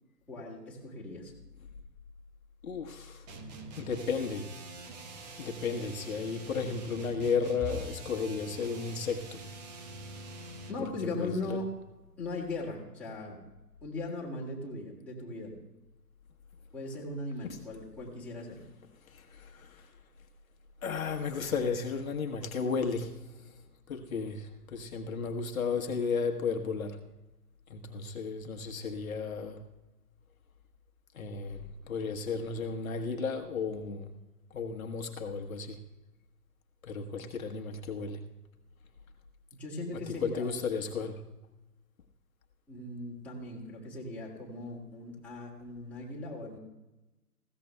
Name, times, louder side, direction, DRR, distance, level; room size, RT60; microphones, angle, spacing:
voice 1, 0.3-1.3 10.7-11.7 12.2-13.4 13.8-15.5 16.7-18.6 39.5-40.5 42.7-46.6, left 2 dB, 5° left, 2.1 m, -38 dB
voice 2, 2.6-3.3 3.8-4.5 5.4-9.5 10.8-10.9 11.2-11.6 17.4-17.6 19.1-19.9 20.8-23.6 23.9-27.1 27.7-29.7 31.1-34.1 34.5-35.8 36.8-38.2 39.9-41.2, left 5 dB, 55° left, 1.2 m, -34 dB
sound 1, 3.3-10.9, right 2 dB, 25° right, 1.0 m, -46 dB
19.5 x 16.0 x 2.2 m
hypercardioid pair, 140°, 48 cm